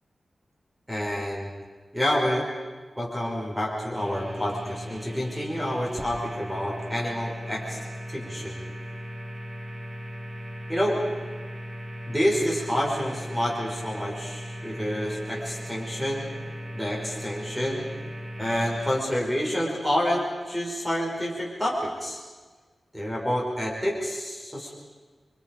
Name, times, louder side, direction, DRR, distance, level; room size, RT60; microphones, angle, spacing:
voice 1, 0.9-1.5 1.9-2.5 3.0-7.8 8.1-8.6 10.7-11.0 12.1-16.3 16.7-17.9 18.4-22.2 22.9-24.7, equal, 5° right, -3 dB, 5.4 m, -28 dB
sound 1, 3.9-19.0, equal, 45° right, 5.9 m, -38 dB
28.5 x 24.5 x 5.4 m, 1.4 s
wide cardioid pair, 115°, 0 cm